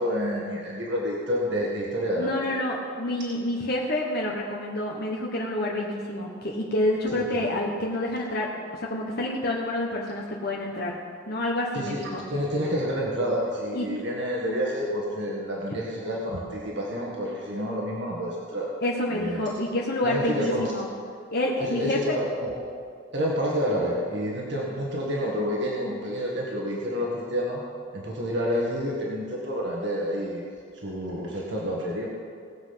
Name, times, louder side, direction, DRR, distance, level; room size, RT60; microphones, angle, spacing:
voice 1, 0.0-2.3 7.0-7.4 11.7-12.0 12.3-18.7 19.1-19.5 20.0-20.7 21.6-22.6 23.1-27.6 27.9-30.4 30.8-32.1, equal, 65° right, -3 dB, 1.9 m, -29 dB
voice 2, 2.1-11.0 11.3-12.2 13.7-13.9 18.8-20.9 21.3-22.2, left 1 dB, 55° left, -2 dB, 1.3 m, -28 dB
19.0 x 7.7 x 5.8 m, 2.2 s
head